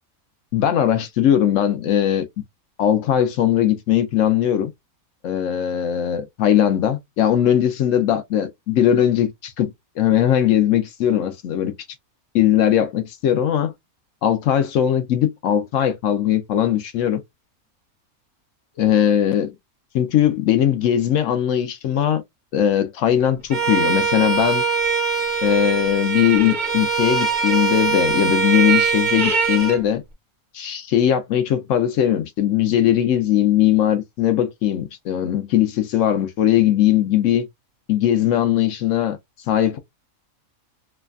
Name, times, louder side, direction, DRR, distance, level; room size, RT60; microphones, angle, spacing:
voice 1, 0.5-2.3 2.8-4.7 5.2-11.7 12.3-13.7 14.2-17.2 18.8-19.5 19.9-22.2 22.5-24.6 25.4-30.0 30.5-37.5 37.9-39.2 39.5-39.8, left 10 dB, 70° left, 0.9 m, -19 dB
Bowed string instrument, 23.5-29.8, right 5 dB, 40° right, 0.8 m, -21 dB
3.2 x 2.1 x 2.3 m
omnidirectional pair, 1.5 m